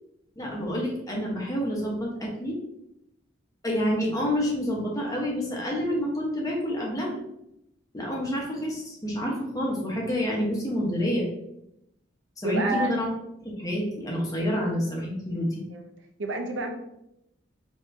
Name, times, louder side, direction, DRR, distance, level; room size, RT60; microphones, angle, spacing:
voice 1, 0.4-2.6 3.6-7.2 7.9-11.3 12.4-13.1 13.4-15.6, equal, 20° left, -2 dB, 0.9 m, -28 dB
voice 2, 12.4-13.0 14.4-14.5 15.7-15.9 16.2-16.7, right 3 dB, 80° right, 4 dB, 0.6 m, -29 dB
4.6 x 2.9 x 2.6 m, 0.82 s
head